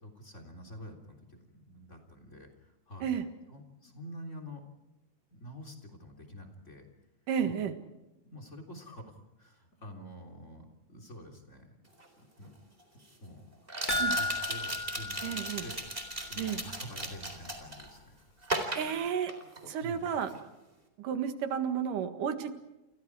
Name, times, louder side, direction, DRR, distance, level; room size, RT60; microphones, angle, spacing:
voice 1, 0.0-3.1 3.5-4.6 5.3-6.9 7.4-7.6 8.2-11.7 12.2-12.5 13.2-13.4 13.9-18.1 19.8-20.1, equal, 20° left, 5 dB, 3.6 m, -48 dB
voice 2, 7.3-7.7 14.0-14.2 15.2-15.6 16.4-16.6 18.7-19.3 19.7-20.3 21.0-22.5, right 8 dB, 85° right, 8 dB, 3.3 m, -32 dB
sound 1, 12.0-12.1 13.7-17.9 18.4-19.8 20.1-20.4, right 1 dB, 15° right, 3.9 m, -37 dB
sound 2, 13.9-16.4 16.7-16.8 17.2-17.3, left 2 dB, 55° left, 0.5 m, -34 dB
29.0 x 29.0 x 4.8 m, 1.0 s
omnidirectional pair, 3.6 m